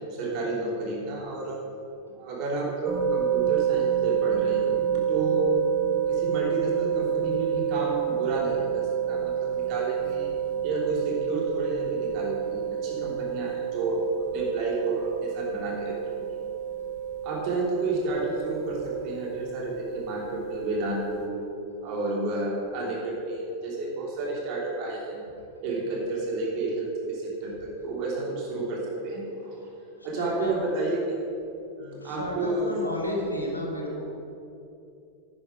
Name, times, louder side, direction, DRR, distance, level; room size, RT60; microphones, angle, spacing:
voice 1, 0.0-1.6 2.1-4.8 5.1-5.5 6.1-10.3 10.6-14.0 14.3-16.3 17.2-21.4 21.8-25.2 25.6-29.6 30.0-31.2 31.8-32.7, right 2 dB, 40° right, -3 dB, 3.2 m, -31 dB
sound 1, 2.9-21.3, right 9 dB, 25° right, 1.2 m, -29 dB
voice 2, 30.2-30.6 32.0-34.0, left 1 dB, 80° left, 0 dB, 1.9 m, -32 dB
10.5 x 10.0 x 5.0 m, 2.7 s
figure-of-eight pair, 90°, 0 cm